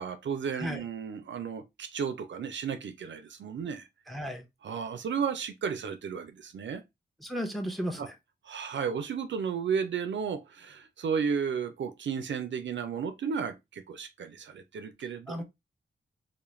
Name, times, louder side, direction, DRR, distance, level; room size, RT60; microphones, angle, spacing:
voice 1, 0.0-3.9 4.6-6.8 8.0-8.1 8.4-15.4, right 6 dB, 70° right, 0.5 m, -33 dB
voice 2, 0.5-0.8 4.1-4.4 7.2-8.1 15.3-15.4, equal, ahead, 0.6 m, -34 dB
2.3 x 2.1 x 3.0 m
cardioid pair, 65°, 20 cm